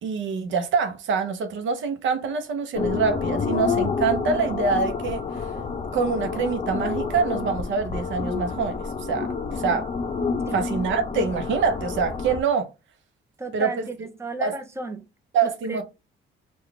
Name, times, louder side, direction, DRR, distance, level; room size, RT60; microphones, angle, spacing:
voice 1, 0.0-5.5 5.9-9.9 10.5-12.7 13.5-13.9 14.4-14.5 15.3-15.8, right 5 dB, 70° right, 0.7 m, -25 dB
sound 1, 2.7-12.4, left 5 dB, 35° left, 0.7 m, -28 dB
voice 2, 13.4-15.0 15.6-15.8, right 2 dB, 15° right, 0.8 m, -33 dB
3.8 x 2.4 x 3.2 m
cardioid pair, 90°, 20 cm